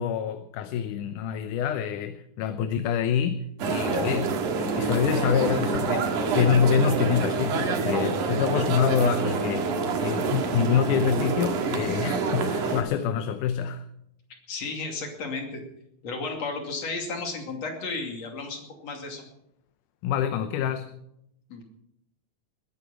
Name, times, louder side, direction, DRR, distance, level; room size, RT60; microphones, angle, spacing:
voice 1, 0.0-9.7 10.0-13.8 20.0-20.9, left 7 dB, 85° left, 9 dB, 2.4 m, -26 dB
sound 1, 3.6-12.8, right 4 dB, 80° right, 3.2 m, -27 dB
voice 2, 14.5-15.6 16.0-19.2 21.5-21.6, left 3 dB, 60° left, 3 dB, 3.7 m, -33 dB
20.5 x 10.5 x 5.9 m, 0.77 s
omnidirectional pair, 3.5 m